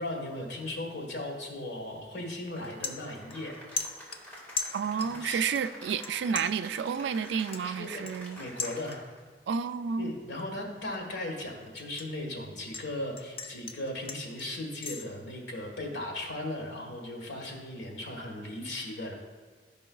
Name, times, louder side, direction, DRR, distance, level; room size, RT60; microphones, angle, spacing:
voice 1, 0.0-3.9 4.9-5.5 7.6-8.1 8.4-9.1 10.0-19.1, left 1 dB, 80° left, 1 dB, 1.4 m, -37 dB
Cheering / Applause, 2.6-9.3, equal, 10° left, 1.9 m, -48 dB
sound 1, 2.8-3.5 3.8-5.3 5.6-6.1 6.4-9.3 9.7-10.0 10.4-12.9 13.2-15.0, left 4 dB, 35° left, 0.5 m, -39 dB
voice 2, 4.7-8.4 9.5-10.1, right 6 dB, 75° right, 12 dB, 0.3 m, -30 dB
12.0 x 5.3 x 2.3 m, 1.4 s
head